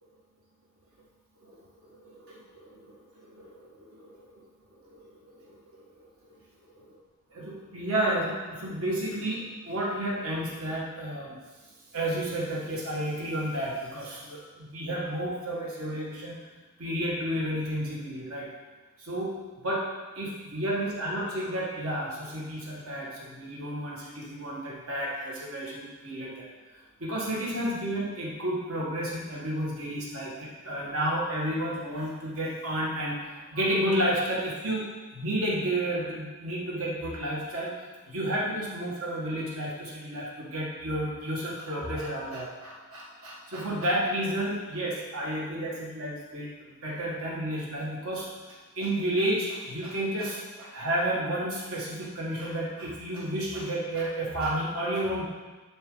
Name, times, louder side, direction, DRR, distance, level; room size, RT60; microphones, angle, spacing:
voice 1, 2.0-2.8 3.2-4.1 4.8-6.0 7.3-11.4 11.9-16.4 16.8-18.5 19.0-19.3 19.6-19.9 20.2-26.5 27.0-37.7 38.1-55.2, right 1 dB, 75° right, -5 dB, 1.9 m, -31 dB
11.0 x 4.5 x 4.0 m, 1.3 s
head